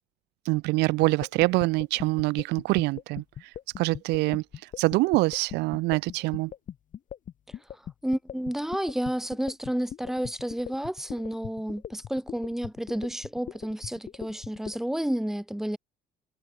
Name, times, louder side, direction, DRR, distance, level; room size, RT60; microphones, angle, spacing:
voice 1, 0.5-3.2 3.8-4.4 4.8-6.5, right 22 dB, 90° right, 0.6 m, -25 dB
sound 1, 1.0-14.8, left 9 dB, 50° left, 2.4 m, -40 dB
voice 2, 7.5-15.8, equal, ahead, 1.6 m, -31 dB
cardioid pair, 110°, 17 cm